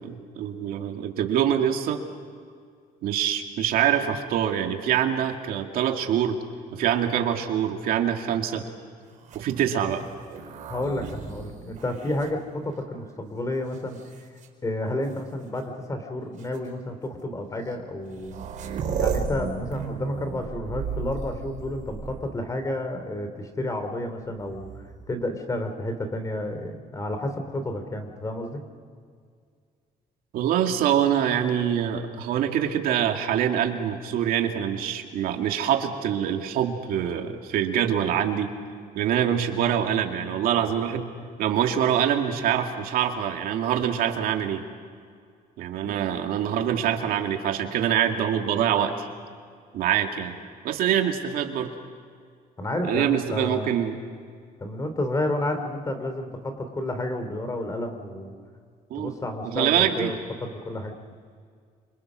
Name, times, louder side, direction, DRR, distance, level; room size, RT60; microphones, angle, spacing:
voice 1, 0.0-2.0 3.0-6.4 6.7-8.7 9.3-10.0 30.3-38.5 38.9-41.1 41.4-44.6 45.6-49.1 49.7-50.4 50.6-51.7 52.8-54.0 58.9-59.1 59.4-60.1, right 9 dB, 75° right, 4 dB, 2.3 m, -25 dB
sound 1, 9.2-13.0 13.7-14.5 15.6-15.7 16.4-16.6 17.7-17.8 18.0-22.5 24.4-25.1, right 6 dB, 55° right, 4.8 m, -34 dB
voice 2, 10.7-14.0 14.6-18.5 19.0-28.6 45.8-45.9 52.6-53.7 54.6-58.3 58.9-60.9, left 1 dB, 20° left, 7 dB, 3.3 m, -31 dB
29.0 x 26.5 x 6.3 m, 2.1 s
cardioid pair, 130°, 15 cm